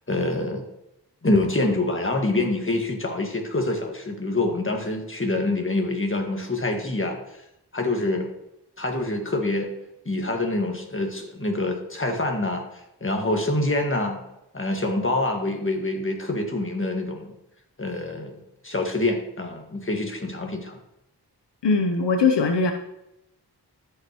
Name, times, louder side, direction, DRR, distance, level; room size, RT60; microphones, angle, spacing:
voice 1, 0.1-0.6 1.2-7.2 7.7-8.3 8.8-9.7 10.1-12.7 13.0-14.2 14.5-17.3 17.8-18.4 18.6-20.8, left 2 dB, 30° left, 2 dB, 1.7 m, -26 dB
voice 2, 21.6-22.7, left 4 dB, 85° left, 5 dB, 0.8 m, -20 dB
13.0 x 5.7 x 3.0 m, 0.85 s
wide cardioid pair, 55°, 41 cm